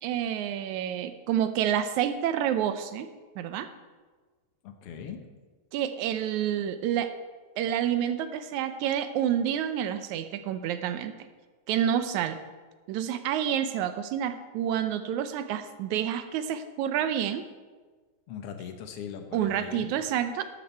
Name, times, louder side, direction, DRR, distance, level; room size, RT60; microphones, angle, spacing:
voice 1, 0.0-3.1 3.4-3.7 5.7-7.1 7.6-11.1 11.7-12.4 12.9-17.4 19.3-20.4, right 10 dB, 80° right, 10 dB, 2.0 m, -28 dB
voice 2, 4.6-5.2 18.3-19.9, left 8 dB, 60° left, 6 dB, 1.8 m, -40 dB
12.5 x 11.5 x 4.5 m, 1.4 s
omnidirectional pair, 3.4 m